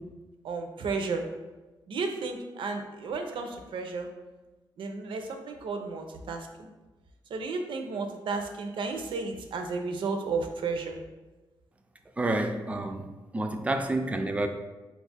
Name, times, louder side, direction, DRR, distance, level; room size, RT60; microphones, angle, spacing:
voice 1, 0.4-1.2 1.9-4.1 4.8-6.5 7.3-11.0, right 4 dB, 75° right, 5 dB, 0.5 m, -33 dB
voice 2, 12.2-13.1 13.3-14.5, right 2 dB, 15° right, 6 dB, 0.3 m, -29 dB
4.3 x 2.4 x 4.0 m, 1.2 s
wide cardioid pair, 135°, 9 cm